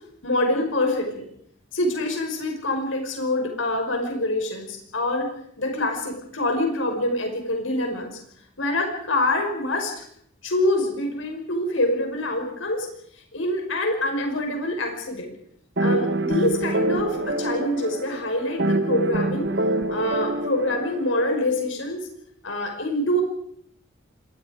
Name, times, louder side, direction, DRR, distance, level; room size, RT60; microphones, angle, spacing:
voice 1, 0.2-1.3 1.7-5.3 5.6-8.2 8.6-10.0 10.4-12.9 13.3-15.3 15.8-19.5 19.9-22.0 22.4-23.2, left 1 dB, 80° left, 3 dB, 5.3 m, -25 dB
sound 1, 15.8-21.4, right 1 dB, 60° right, 1.5 m, -26 dB
27.5 x 23.5 x 5.1 m, 0.69 s
head